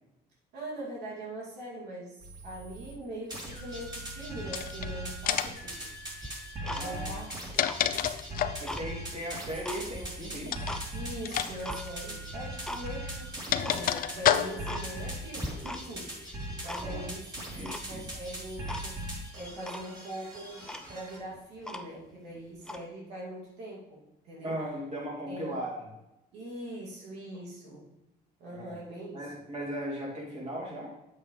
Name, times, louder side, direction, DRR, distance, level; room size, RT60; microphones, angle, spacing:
voice 1, 0.5-5.9 6.6-7.3 10.9-18.9 19.3-24.6 25.3-25.6 26.3-27.8 28.4-29.2, right 1 dB, 85° right, -5 dB, 2.5 m, -42 dB
sound 1, 2.2-2.9 3.3-21.2, right 1 dB, 25° right, 2.4 m, -40 dB
sound 2, 4.5-4.9 5.3-5.7 7.2-8.7 10.5-10.8 11.2-11.5 11.8-11.9 12.9-14.8, left 11 dB, 60° left, 0.5 m, -29 dB
Tick-tock, 6.2-7.2 7.6-8.9 9.3-10.9 11.2-11.8 12.3-12.8 13.1-13.2 13.6-13.8 14.2-14.3 14.6-15.2 15.4-16.1 16.3-17.1 17.7-18.2 18.7-18.9 19.2-19.3 19.6-19.9 20.4-20.5 20.6-22.1 22.6-22.9, left 1 dB, 5° left, 0.5 m, -40 dB
voice 2, 6.8-7.2 8.6-10.7 16.8-17.0 17.5-18.1 24.4-25.8 28.5-28.8 29.1-30.9, equal, 40° right, -3 dB, 2.9 m, -37 dB
8.4 x 7.3 x 3.3 m, 0.92 s
cardioid pair, 110°, 17 cm